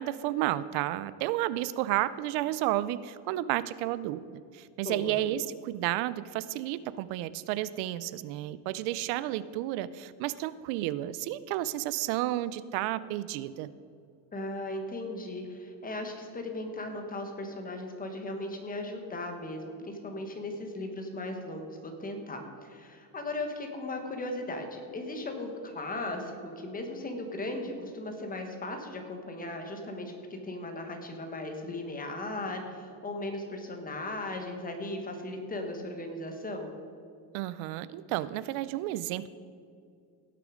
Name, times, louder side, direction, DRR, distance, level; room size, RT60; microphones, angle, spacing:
voice 1, 0.0-13.7 37.3-39.3, right 14 dB, 85° right, 16 dB, 0.6 m, -32 dB
voice 2, 4.8-5.2 14.3-36.7, left 2 dB, 20° left, 4 dB, 1.3 m, -37 dB
17.0 x 6.7 x 5.0 m, 2.4 s
cardioid pair, 155°, 46 cm